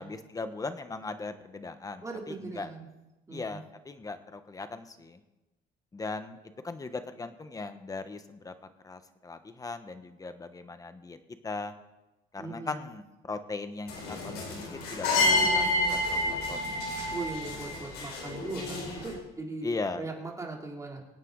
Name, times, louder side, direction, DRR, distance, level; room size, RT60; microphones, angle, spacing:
voice 1, 0.0-2.7 3.3-5.2 5.9-6.4 6.6-8.5 8.8-11.2 11.4-11.7 12.3-16.6 19.6-20.0, left 3 dB, 20° left, 9 dB, 1.2 m, -38 dB
voice 2, 2.0-2.9 3.3-3.6 12.4-12.8 17.1-19.7 20.0-21.0, right 3 dB, 20° right, -1 dB, 3.4 m, -39 dB
sound 1, 13.9-19.1, left 2 dB, 80° left, 4.7 m, -29 dB
24.5 x 9.0 x 4.0 m, 1.0 s
cardioid pair, 110°, 17 cm